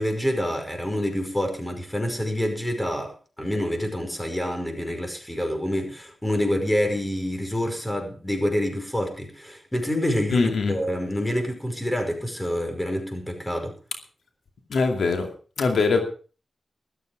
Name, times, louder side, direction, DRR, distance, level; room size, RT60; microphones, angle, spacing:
voice 1, 0.0-13.7, equal, 10° left, 4 dB, 5.3 m, -27 dB
voice 2, 10.3-10.7 14.7-15.3 15.6-16.0, left 4 dB, 85° left, 5 dB, 2.4 m, -21 dB
14.5 x 13.0 x 5.0 m, 0.38 s
wide cardioid pair, 75°, 0 cm